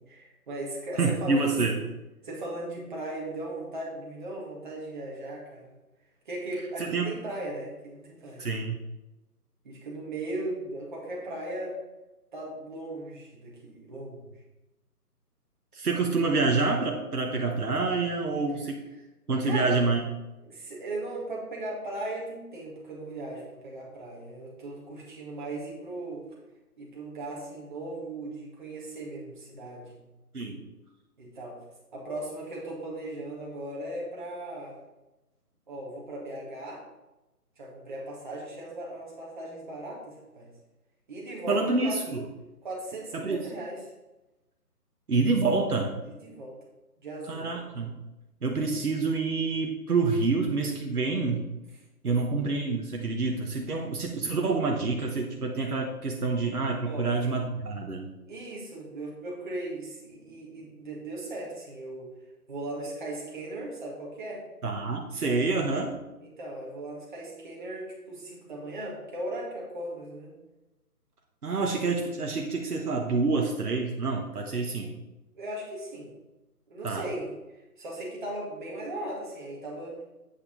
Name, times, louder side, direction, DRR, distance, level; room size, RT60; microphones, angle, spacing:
voice 1, 0.0-1.8 2.2-5.7 6.3-8.4 9.6-11.8 12.3-14.3 15.8-15.9 19.4-19.8 20.4-26.2 26.8-30.0 31.2-31.6 31.9-34.8 35.7-36.8 37.6-40.5 41.1-42.0 42.6-43.8 46.0-46.6 47.0-47.5 52.0-52.3 56.8-57.1 58.3-62.1 62.5-64.4 66.2-70.4 74.6-74.8 75.3-76.1 76.7-77.3 77.8-80.0, right 1 dB, 30° right, -3 dB, 2.0 m, -37 dB
voice 2, 1.0-1.8 6.8-7.1 8.4-8.8 15.7-18.8 19.3-20.0 30.3-30.7 41.5-42.3 43.1-43.5 45.1-45.9 47.3-47.9 48.4-51.5 52.0-58.1 64.6-65.9 71.4-74.9 76.8-77.0, right 3 dB, 65° right, 1 dB, 1.2 m, -27 dB
8.4 x 5.5 x 4.0 m, 1.0 s
figure-of-eight pair, 150°, 47 cm